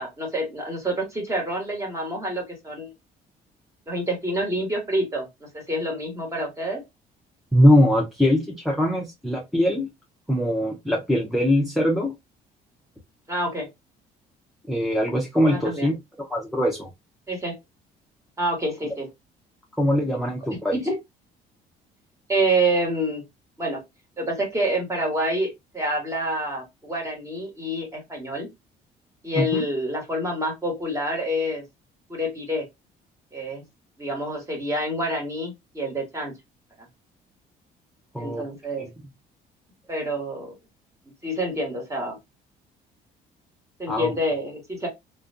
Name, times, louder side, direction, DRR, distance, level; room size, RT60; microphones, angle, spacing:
voice 1, 0.0-2.9 3.9-6.8 13.3-13.7 15.5-15.9 17.3-17.5 18.4-19.1 20.1-20.2 20.5-21.0 22.3-23.2 23.6-23.8 24.2-28.5 29.2-31.6 32.1-32.6 33.3-33.6 34.0-36.3 38.2-38.9 39.9-40.5 41.2-42.2 43.8-44.9, right 1 dB, 20° right, 1 dB, 1.2 m, -27 dB
voice 2, 7.5-9.9 10.3-12.1 14.7-15.9 16.3-16.9 19.8-20.8 29.4-29.6 38.1-38.4 43.9-44.1, equal, ahead, -2 dB, 0.6 m, -21 dB
2.4 x 2.2 x 2.4 m, 0.20 s
cardioid pair, 110°, 17 cm